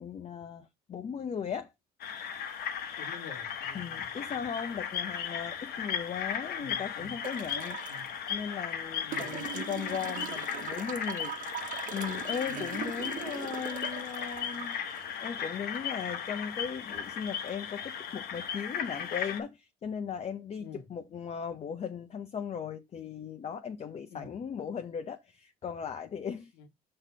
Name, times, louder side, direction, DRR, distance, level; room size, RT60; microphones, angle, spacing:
voice 1, 0.0-1.7 3.7-7.8 8.3-14.8 15.2-26.5, left 7 dB, 40° left, 0.8 m, -37 dB
sound 1, 2.0-19.4, left 8 dB, 65° left, 1.0 m, -36 dB
voice 2, 3.0-4.5 6.6-7.2 7.9-8.2 9.0-9.3 12.5-12.8 20.6-20.9 24.1-24.4 26.5-26.7, left 3 dB, 85° left, 1.2 m, -49 dB
sound 2, 7.2-8.1 9.1-16.1 17.5-17.6, right 12 dB, 50° right, 0.5 m, -41 dB
5.9 x 3.2 x 5.4 m
cardioid pair, 110°, 17 cm